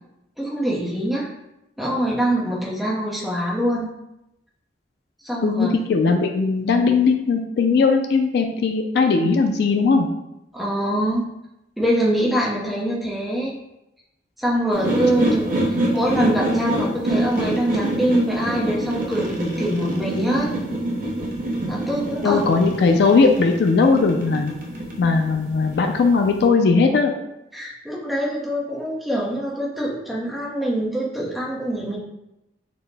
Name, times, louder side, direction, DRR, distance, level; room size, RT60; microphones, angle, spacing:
voice 1, 0.4-1.3 1.8-3.9 5.2-5.7 10.5-11.3 11.8-13.5 14.4-20.5 21.7-22.4 27.5-32.0, right 1 dB, ahead, -5 dB, 0.6 m, -24 dB
voice 2, 5.4-10.1 22.2-24.5 25.0-27.1, left 4 dB, 60° left, 4 dB, 0.3 m, -18 dB
sound 1, 14.7-26.4, right 1 dB, 50° right, 0.6 m, -26 dB
4.0 x 2.1 x 3.3 m, 0.89 s
head